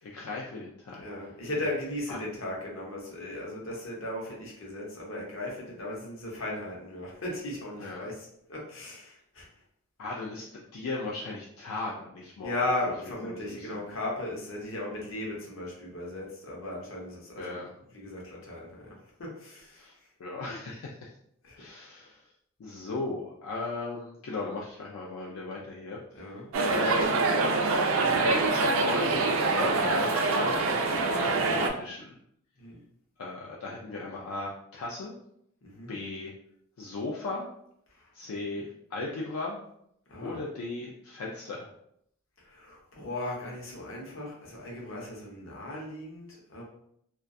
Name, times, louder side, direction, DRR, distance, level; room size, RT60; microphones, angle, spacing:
voice 1, 0.0-1.0 2.1-2.2 7.8-8.1 10.0-12.9 13.2-13.9 17.4-17.7 19.7-19.9 20.2-21.1 21.5-22.3 22.6-26.2 26.7-27.5 28.0-32.1 33.2-35.2 35.9-36.3 36.8-37.5 38.1-39.6 40.2-41.7, left 3 dB, 80° left, -3 dB, 0.4 m, -37 dB
voice 2, 1.0-9.5 12.4-17.6 17.9-18.9 19.2-19.8 21.4-21.6 26.1-26.5 32.6-32.8 35.6-36.0 40.1-40.4 42.4-46.6, left 1 dB, 60° left, -3 dB, 0.7 m, -37 dB
sound 1, 26.5-31.7, right 3 dB, 60° right, 0.3 m, -25 dB
2.2 x 2.2 x 2.6 m, 0.73 s
head